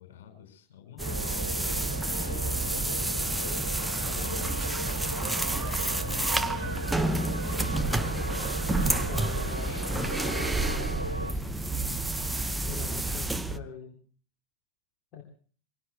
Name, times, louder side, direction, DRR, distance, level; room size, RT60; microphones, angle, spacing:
voice 1, 0.0-7.9 8.7-12.0, left 10 dB, 60° left, 5 dB, 6.1 m, -48 dB
sound 1, 1.0-13.6, right 2 dB, 5° right, 0.8 m, -29 dB
sound 2, 1.0-11.3, right 1 dB, 90° right, 0.8 m, -38 dB
sound 3, 3.8-9.5, right 8 dB, 25° right, 2.4 m, -46 dB
voice 2, 9.1-9.7 12.7-14.0 15.1-15.2, left 6 dB, 35° left, 2 dB, 3.2 m, -42 dB
24.5 x 22.5 x 2.2 m, 0.42 s
figure-of-eight pair, 90°, 0 cm